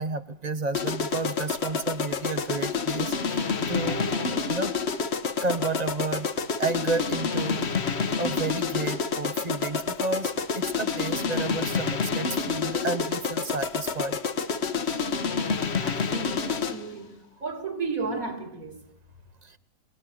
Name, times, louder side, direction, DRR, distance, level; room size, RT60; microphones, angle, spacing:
voice 1, 0.0-4.0 4.5-4.7 5.4-7.7 8.2-14.2 19.4-19.6, right 3 dB, 30° right, 0.9 m, -31 dB
sound 1, 0.7-16.9, left 5 dB, 45° left, 1.2 m, -28 dB
voice 2, 3.8-4.5 15.8-18.8, right 4 dB, 55° right, 3.9 m, -34 dB
25.0 x 19.0 x 8.9 m
omnidirectional pair, 1.7 m